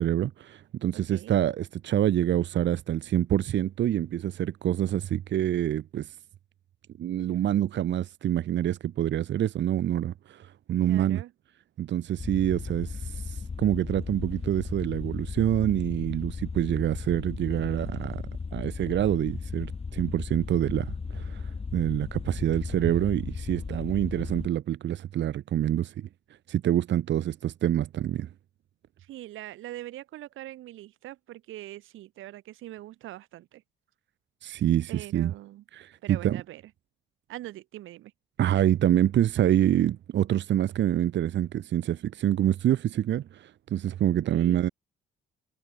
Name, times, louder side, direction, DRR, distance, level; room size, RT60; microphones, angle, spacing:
voice 1, 0.0-6.1 7.0-11.2 11.8-18.2 18.5-26.1 26.5-28.3 34.4-35.3 35.7-36.4 38.4-44.7, right 11 dB, 65° right, 1.1 m, -26 dB
voice 2, 0.9-1.4 10.8-11.3 29.0-33.6 34.9-35.6 36.0-36.6 37.3-38.1 44.3-44.6, right 15 dB, 85° right, 1.6 m, -42 dB
sound 1, 12.2-24.5, left 4 dB, 30° left, 2.3 m, -36 dB
cardioid pair, 90°, 20 cm